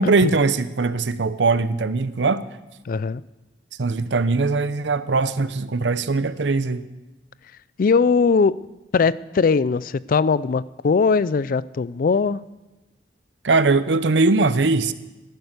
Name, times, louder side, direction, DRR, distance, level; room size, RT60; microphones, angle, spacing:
voice 1, 0.0-2.4 3.8-6.8 13.4-14.9, right 3 dB, 90° right, 14 dB, 0.7 m, -20 dB
voice 2, 2.9-3.2 7.8-8.6 8.9-12.4, left 5 dB, 50° left, 19 dB, 0.4 m, -20 dB
14.5 x 11.5 x 6.6 m, 1.1 s
head